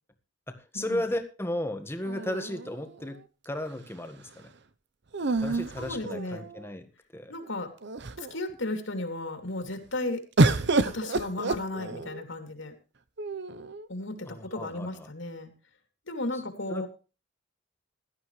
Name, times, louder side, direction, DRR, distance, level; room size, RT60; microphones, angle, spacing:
voice 1, 0.5-4.5 5.4-7.3 14.3-15.1 16.7-16.9, left 1 dB, 10° left, 7 dB, 1.6 m, -35 dB
sound 1, 2.0-3.2 5.1-6.7 7.4-7.5 7.8-8.4 10.4-12.2 13.2-13.9, right 3 dB, 60° right, 0.8 m, -28 dB
voice 2, 5.8-6.5 7.3-7.7 8.2-10.2 10.8-12.7 13.9-15.5 16.1-16.9, left 2 dB, 70° left, 6 dB, 2.8 m, -34 dB
17.0 x 12.5 x 3.2 m, 0.32 s
head